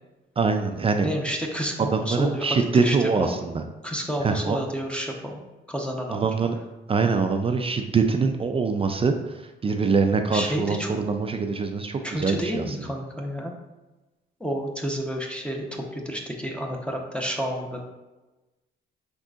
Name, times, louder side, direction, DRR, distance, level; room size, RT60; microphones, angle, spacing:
voice 1, 0.4-1.1 1.9-3.6 4.2-4.6 6.1-6.5 6.9-9.1 9.6-12.6, right 4 dB, 30° right, 5 dB, 0.4 m, -23 dB
voice 2, 1.0-3.4 3.8-5.4 5.7-6.3 10.3-10.9 12.0-13.5 14.4-17.8, equal, 5° left, 1 dB, 0.7 m, -30 dB
5.3 x 3.7 x 2.4 m, 1.1 s
cardioid pair, 90°, 20 cm